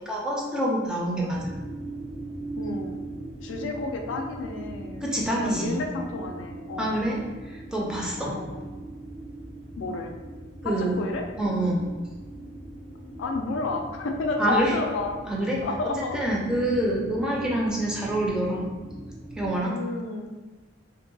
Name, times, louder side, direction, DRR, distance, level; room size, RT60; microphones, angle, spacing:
voice 1, 0.0-1.4 5.0-5.8 6.8-7.2 7.5-8.3 10.6-11.0 11.4-11.8 14.4-14.7 15.2-15.6 16.1-18.7 19.4-19.7, right 1 dB, 5° right, -4 dB, 0.4 m, -26 dB
sound 1, 1.3-19.6, right 2 dB, 80° right, 1.4 m, -40 dB
voice 2, 2.6-3.0 3.4-7.1 8.2-8.7 9.8-10.1 10.6-11.3 13.2-15.2 15.6-16.2 17.2-17.5 19.6-20.4, left 3 dB, 75° left, 3 dB, 0.3 m, -31 dB
2.6 x 2.2 x 2.6 m, 1.3 s
head